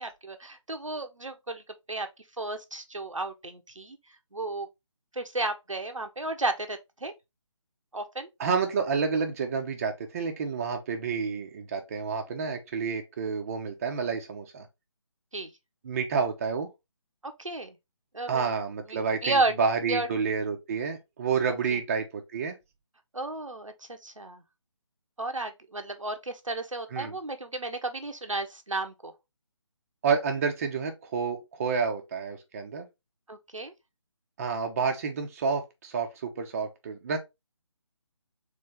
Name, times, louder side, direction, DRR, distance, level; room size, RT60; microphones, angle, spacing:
voice 1, 0.0-1.6 1.9-2.1 2.4-4.0 4.3-4.7 5.1-7.1 7.9-8.3 15.3-15.5 17.2-17.7 18.1-18.5 18.9-19.5 19.9-20.1 21.7-21.8 23.1-24.4 25.2-29.1 33.3-33.7, right 2 dB, 85° right, 1.0 m, -33 dB
voice 2, 8.4-14.7 15.8-16.7 18.3-22.6 26.9-27.2 30.0-32.9 34.4-37.2, right 5 dB, 30° right, 0.8 m, -29 dB
3.7 x 3.3 x 3.6 m
figure-of-eight pair, 150°, 16 cm